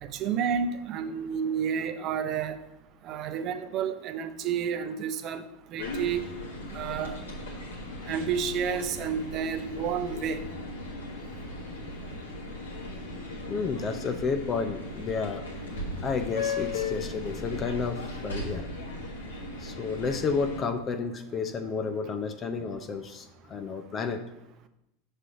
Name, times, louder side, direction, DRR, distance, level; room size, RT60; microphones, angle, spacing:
voice 1, 0.0-2.6 3.0-6.2 6.7-7.2 8.0-10.5, right 7 dB, 45° right, 10 dB, 0.5 m, -30 dB
sound 1, 5.8-20.6, left 2 dB, 85° left, 1.2 m, -37 dB
voice 2, 13.5-15.5 16.0-18.7 19.6-24.2, left 5 dB, 35° left, 9 dB, 0.5 m, -31 dB
6.0 x 3.3 x 5.6 m, 0.87 s
hypercardioid pair, 85°, 0 cm